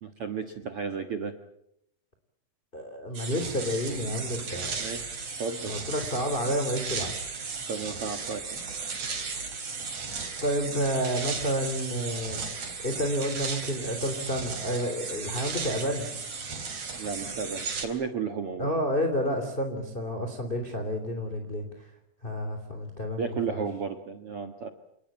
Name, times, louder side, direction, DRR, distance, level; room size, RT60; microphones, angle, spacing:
voice 1, 0.0-1.3 4.8-5.7 7.7-8.4 16.9-18.7 23.2-24.7, right 5 dB, 75° right, 7 dB, 1.3 m, -33 dB
voice 2, 2.7-4.9 5.7-7.1 10.4-12.4 12.8-16.1 18.6-21.9 22.2-23.6, equal, 15° left, 4 dB, 2.8 m, -30 dB
sound 1, 3.1-17.9, right 5 dB, 40° right, 4.5 m, -35 dB
29.0 x 20.0 x 8.6 m, 0.76 s
omnidirectional pair, 5.1 m